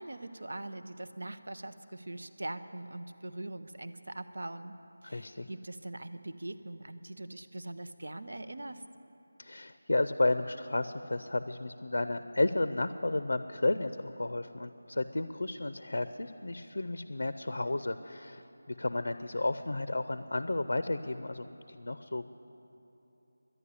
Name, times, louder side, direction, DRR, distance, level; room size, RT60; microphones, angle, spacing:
voice 1, 0.0-4.8 5.0-8.8, right 1 dB, 75° right, 10 dB, 0.7 m, -42 dB
voice 2, 5.0-5.5 9.4-22.3, left 2 dB, 80° left, 12 dB, 0.5 m, -32 dB
11.0 x 10.0 x 9.7 m, 3.0 s
figure-of-eight pair, 175°, 0 cm